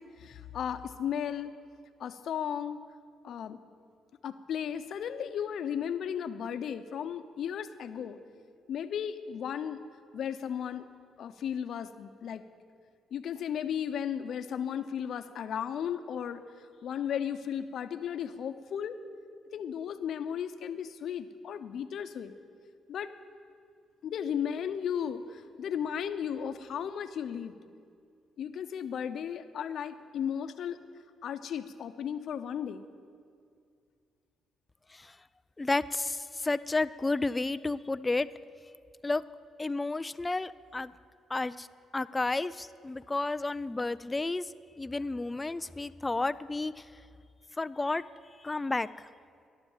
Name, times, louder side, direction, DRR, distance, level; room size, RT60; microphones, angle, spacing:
voice 1, 0.0-1.5 2.0-2.8 3.2-3.6 4.2-8.2 8.7-9.8 10.1-10.9 11.2-12.4 13.1-16.4 16.8-19.0 19.5-22.3 22.9-23.1 24.0-27.6 28.4-30.8 31.2-32.9, left 8 dB, 70° left, 9 dB, 0.8 m, -35 dB
voice 2, 35.6-38.3 39.0-39.2 39.6-40.9 41.3-41.7 41.9-44.5 44.8-46.9 47.6-48.0 48.4-49.1, left 2 dB, 20° left, 16 dB, 0.4 m, -31 dB
15.0 x 11.5 x 7.4 m, 2.2 s
cardioid pair, 90°, 0 cm